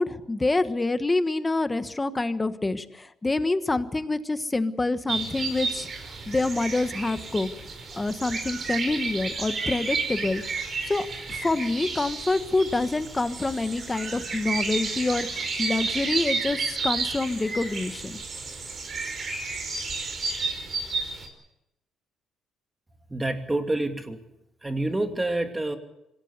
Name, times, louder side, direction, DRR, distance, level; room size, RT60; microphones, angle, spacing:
voice 1, 0.0-5.9 6.3-7.5 7.9-18.2, left 2 dB, 15° left, 10 dB, 1.3 m, -27 dB
sound 1, 5.1-21.3, right 4 dB, 40° right, 5.1 m, -32 dB
voice 2, 23.1-24.2 24.6-25.8, right 2 dB, 10° right, 5 dB, 2.7 m, -27 dB
25.5 x 17.0 x 8.2 m, 0.86 s
cardioid pair, 130°, 0 cm